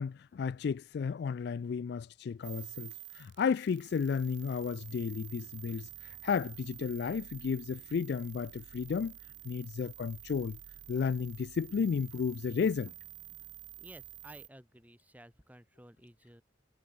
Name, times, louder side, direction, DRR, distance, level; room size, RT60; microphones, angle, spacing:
voice 1, 0.0-9.2 9.4-10.6 10.9-12.9, left 6 dB, 60° left, 0.3 m, -33 dB
sound 1, 2.4-14.5, right 14 dB, 85° right, 1.3 m, -49 dB
voice 2, 13.8-16.4, right 1 dB, 10° right, 4.9 m, -54 dB
head